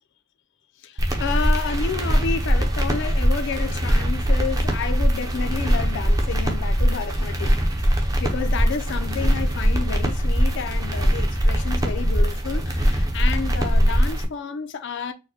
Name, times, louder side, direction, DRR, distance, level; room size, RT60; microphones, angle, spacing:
voice 1, 0.8-7.6 7.9-15.1, left 5 dB, 55° left, 0.4 m, -30 dB
sound 1, 1.0-14.2, equal, 15° right, 0.5 m, -21 dB
4.5 x 2.1 x 2.7 m
head